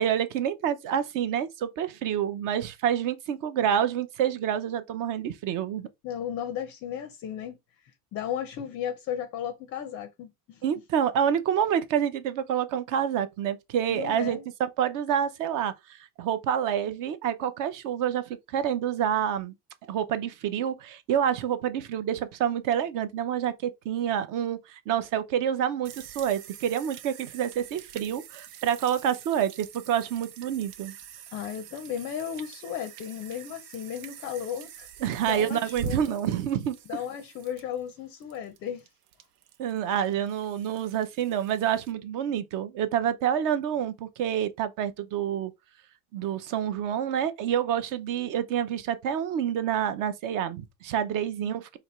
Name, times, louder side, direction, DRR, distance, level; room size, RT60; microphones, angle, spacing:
voice 1, 0.0-5.9 10.6-14.4 14.8-19.5 19.9-30.9 35.0-36.8 39.6-45.5 46.1-51.8, right 9 dB, 45° right, 0.6 m, -28 dB
voice 2, 6.0-7.6 8.1-10.6 13.9-14.5 31.3-34.9 35.2-36.2 36.9-38.9 51.4-51.5, left 9 dB, 30° left, 0.5 m, -35 dB
sound 1, 25.8-41.9, right 8 dB, 80° right, 0.8 m, -44 dB
4.2 x 2.9 x 3.1 m
cardioid pair, 155°, 45 cm